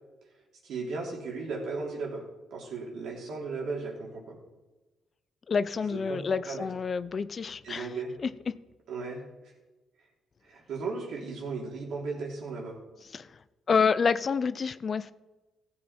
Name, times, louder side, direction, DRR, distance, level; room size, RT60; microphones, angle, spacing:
voice 1, 0.6-2.2 2.5-4.4 5.9-6.7 7.6-8.1 8.9-9.2 10.4-12.8, right 4 dB, 75° right, 3.3 m, -36 dB
voice 2, 5.5-7.9 8.2-8.6 13.1-13.4 13.7-15.1, left 5 dB, 45° left, 0.5 m, -28 dB
15.5 x 7.6 x 4.4 m
cardioid pair, 90°, 0 cm